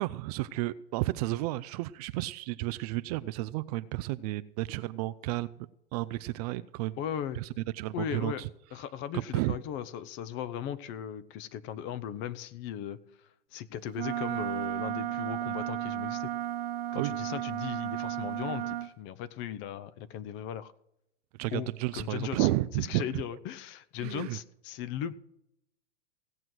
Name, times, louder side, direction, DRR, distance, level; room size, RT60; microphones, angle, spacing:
voice 1, 0.0-5.5 5.9-7.0 7.3-8.5 9.1-9.6 16.9-17.1 21.4-23.2 24.0-24.4, right 18 dB, 40° right, 15 dB, 0.4 m, -32 dB
voice 2, 7.0-7.4 7.9-8.4 8.7-13.0 13.5-16.3 16.9-20.7 21.5-21.7 21.9-22.5 22.8-25.2, left 10 dB, 35° left, 16 dB, 0.7 m, -37 dB
Wind instrument woodwind instrument, 13.9-18.9, right 13 dB, 60° right, 0.9 m, -33 dB
16.5 x 7.8 x 6.1 m, 0.78 s
hypercardioid pair, 125°, 34 cm